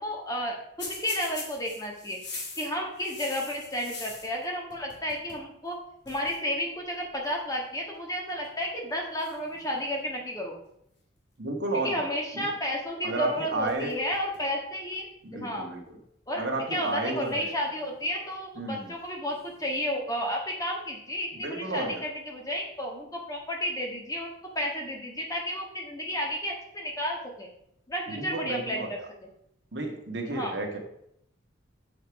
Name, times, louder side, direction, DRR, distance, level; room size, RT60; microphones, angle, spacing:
voice 1, 0.0-2.2 2.6-5.8 6.0-10.5 11.7-15.7 16.3-27.5 27.9-29.0 30.3-30.6, equal, 20° left, 0 dB, 1.6 m, -32 dB
sound 1, 0.8-4.4 4.7-5.5 5.7-5.8 6.0-6.4 7.2-7.5 8.3-8.6 9.2-10.2 13.2-13.3 13.7-14.5 14.9-15.0 15.9-16.0 17.2-18.1 19.3-19.9, left 3 dB, 60° left, 3.0 m, -43 dB
voice 2, 11.4-12.1 12.3-12.5 13.0-13.9 15.2-15.8 16.4-17.5 18.6-18.9 21.4-22.0 28.1-28.9 29.7-30.8, right 2 dB, 60° right, 2 dB, 1.7 m, -32 dB
7.7 x 6.6 x 4.8 m, 0.75 s
head